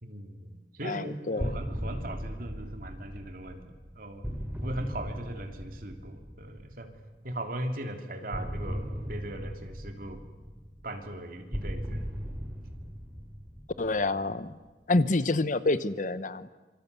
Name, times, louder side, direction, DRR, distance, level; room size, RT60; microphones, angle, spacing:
voice 1, 0.0-3.6 4.0-4.2 4.6-6.9 7.2-10.2 10.8-12.0, right 1 dB, 50° right, 5 dB, 3.1 m, -39 dB
voice 2, 0.8-1.5 13.8-14.6 14.9-16.5, left 2 dB, 45° left, 14 dB, 0.9 m, -27 dB
sound 1, 1.4-7.1 8.3-14.6, equal, 10° right, 4.3 m, -38 dB
26.5 x 25.0 x 8.3 m, 1.2 s
head